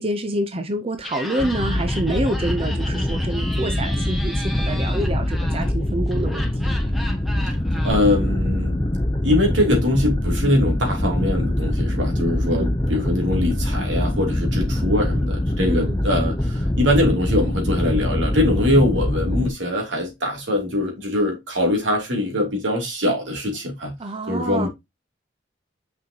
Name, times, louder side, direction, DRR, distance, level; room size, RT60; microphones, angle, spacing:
voice 1, 0.0-6.5 12.5-12.8 15.7-16.0 24.0-24.7, right 1 dB, 30° right, 0.7 m, -27 dB
Laughter, 1.0-7.9, equal, ahead, 1.5 m, -35 dB
sound 1, 1.4-19.5, left 1 dB, 20° left, 0.7 m, -23 dB
voice 2, 7.8-8.8 9.2-23.9 24.3-24.7, left 1 dB, 80° right, 2.8 m, -22 dB
6.4 x 5.5 x 2.8 m
head